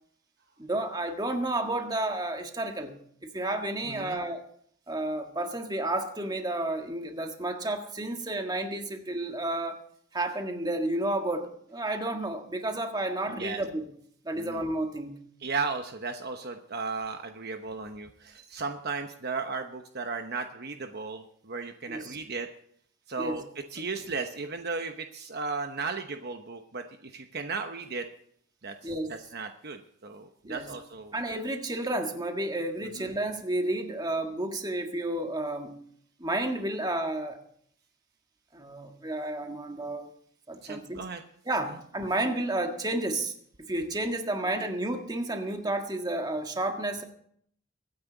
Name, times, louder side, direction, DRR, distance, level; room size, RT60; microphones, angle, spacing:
voice 1, 0.6-2.9 3.2-4.4 4.9-9.8 10.1-13.9 14.2-15.2 21.9-22.2 23.2-23.4 23.8-23.9 28.8-29.1 30.4-30.7 31.1-35.7 36.2-37.4 38.5-40.1 40.5-41.0 41.4-47.0, right 1 dB, 20° right, 4 dB, 1.7 m, -31 dB
voice 2, 3.9-4.2 13.3-13.6 14.4-14.6 15.4-22.5 23.1-23.4 23.7-28.0 28.6-28.7 29.1-31.1 33.0-33.1 40.6-41.2, right 4 dB, 50° right, 6 dB, 1.0 m, -35 dB
23.5 x 9.7 x 4.0 m, 0.64 s
head